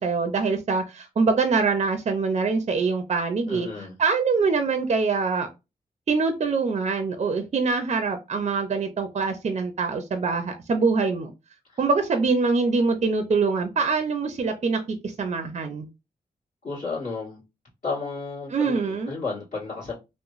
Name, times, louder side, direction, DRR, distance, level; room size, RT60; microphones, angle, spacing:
voice 1, 0.0-5.5 6.1-11.3 11.8-15.9 18.5-19.1, right 4 dB, 45° right, 0.5 m, -24 dB
voice 2, 3.5-3.9 16.6-17.4 17.8-19.9, left 4 dB, 55° left, 1.4 m, -32 dB
3.0 x 2.0 x 2.4 m
cardioid pair, 70°, 16 cm